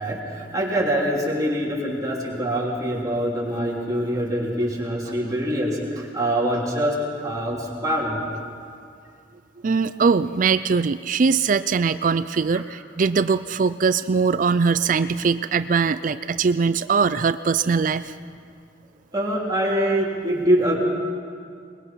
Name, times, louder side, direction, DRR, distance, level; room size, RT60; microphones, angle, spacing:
voice 1, 0.0-8.2 12.5-12.6 19.1-20.8, equal, 20° right, -3 dB, 3.4 m, -24 dB
voice 2, 9.6-18.1, right 5 dB, 45° right, 13 dB, 0.4 m, -21 dB
22.5 x 21.0 x 5.8 m, 2.3 s
head